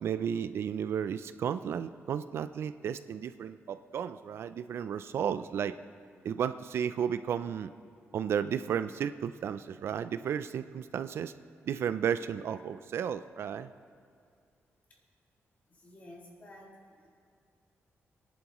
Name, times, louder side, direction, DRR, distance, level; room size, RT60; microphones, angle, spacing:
voice 1, 0.0-5.7 6.2-7.7 8.1-11.3 11.7-13.7, right 8 dB, 60° right, 12 dB, 0.3 m, -33 dB
voice 2, 15.7-17.1, left 1 dB, 35° left, -1 dB, 2.1 m, -52 dB
23.0 x 10.5 x 3.0 m, 2.3 s
wide cardioid pair, 175°, 5 cm